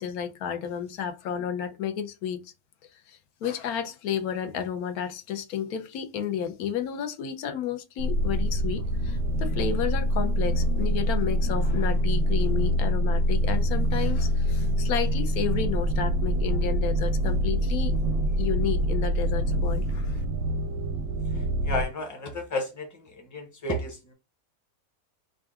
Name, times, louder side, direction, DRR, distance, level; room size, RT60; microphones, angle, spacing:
voice 1, 0.0-2.5 3.1-18.0 18.4-20.2, left 8 dB, 80° left, 1.1 m, -32 dB
sound 1, 8.0-21.8, equal, 90° right, 1.2 m, -25 dB
voice 2, 21.3-22.9 23.3-24.1, left 1 dB, 15° left, 0.7 m, -32 dB
3.8 x 2.4 x 3.5 m
omnidirectional pair, 1.6 m